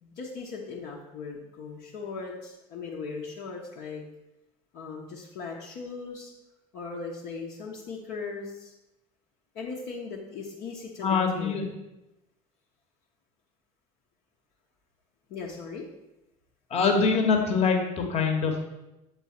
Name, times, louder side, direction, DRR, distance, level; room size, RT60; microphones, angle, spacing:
voice 1, 0.0-4.0 4.7-6.3 6.7-8.7 9.5-11.6 15.3-15.9, left 4 dB, 50° left, -3 dB, 0.9 m, -38 dB
voice 2, 11.0-11.6 16.7-18.7, left 5 dB, 35° left, 3 dB, 1.2 m, -24 dB
7.3 x 3.9 x 4.1 m, 0.95 s
figure-of-eight pair, 65°, 19 cm